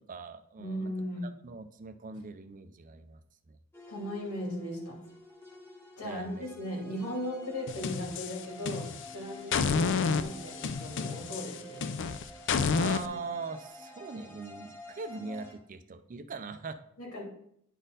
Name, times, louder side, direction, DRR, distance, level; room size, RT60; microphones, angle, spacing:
voice 1, 0.0-0.9 1.4-3.2 3.5-3.6 6.0-6.5 12.7-16.8, right 4 dB, 35° right, 10 dB, 0.4 m, -41 dB
voice 2, 0.6-1.3 3.9-5.0 6.0-11.8 17.0-17.2, left 1 dB, 85° left, -2 dB, 2.7 m, -37 dB
sound 1, 3.7-15.5, left 1 dB, 10° left, 1.2 m, -50 dB
sound 2, 7.7-9.1 9.5-13.1, left 5 dB, 55° left, 0.4 m, -30 dB
10.0 x 4.1 x 3.9 m, 0.71 s
head